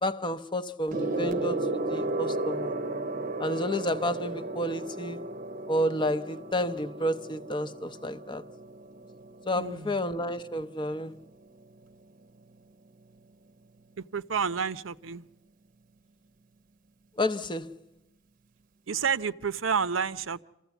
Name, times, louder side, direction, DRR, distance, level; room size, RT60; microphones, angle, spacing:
voice 1, 0.0-2.7 3.4-5.2 5.7-8.4 9.5-11.2 17.2-17.7, equal, 25° left, 0.7 m, -30 dB
Gong, 0.9-10.7 11.6-11.9, right 2 dB, 45° right, 0.8 m, -34 dB
voice 2, 9.5-10.0 14.0-15.3 18.9-20.4, right 6 dB, 80° right, 0.7 m, -30 dB
26.5 x 15.0 x 8.1 m
head